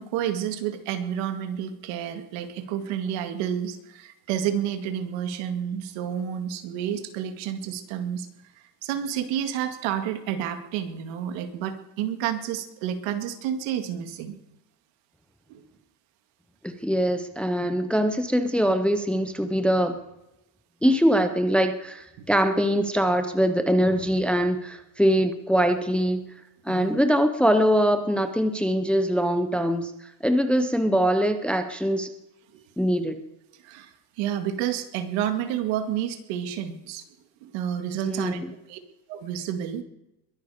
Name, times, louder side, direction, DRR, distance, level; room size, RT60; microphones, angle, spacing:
voice 1, 0.0-8.3 8.8-14.4 15.5-15.6 20.8-21.0 26.7-26.9 32.5-32.6 33.6-33.9 34.2-37.0 37.4-38.4 38.7-38.8 39.1-39.8, right 9 dB, 85° right, 8 dB, 2.2 m, -30 dB
voice 2, 16.6-20.0 20.8-26.2 26.7-29.9 30.2-32.1 32.8-33.2 38.0-38.5, equal, 5° left, 8 dB, 0.6 m, -23 dB
22.0 x 11.5 x 5.0 m, 0.88 s
cardioid pair, 180°, 44 cm